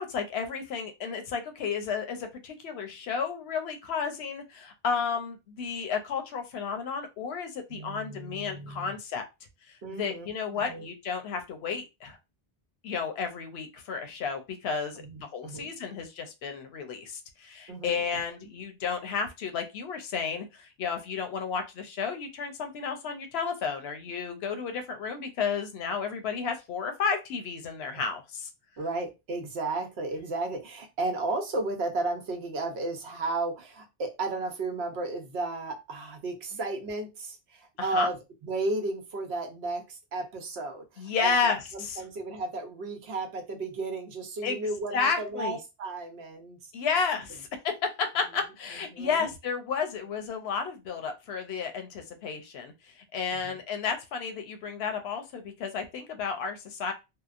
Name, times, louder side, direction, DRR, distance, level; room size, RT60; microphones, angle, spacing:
voice 1, 0.0-9.3 9.7-12.2 12.8-28.5 37.8-38.1 41.0-42.0 44.4-44.6 44.9-45.6 46.7-56.9, left 5 dB, 85° left, 6 dB, 0.8 m, -32 dB
voice 2, 7.7-8.9 9.8-10.9 15.0-15.7 17.7-18.2 28.8-46.7 48.9-49.3 53.3-53.6, right 2 dB, 85° right, 4 dB, 1.0 m, -34 dB
2.7 x 2.0 x 2.4 m, 0.25 s
omnidirectional pair, 1.1 m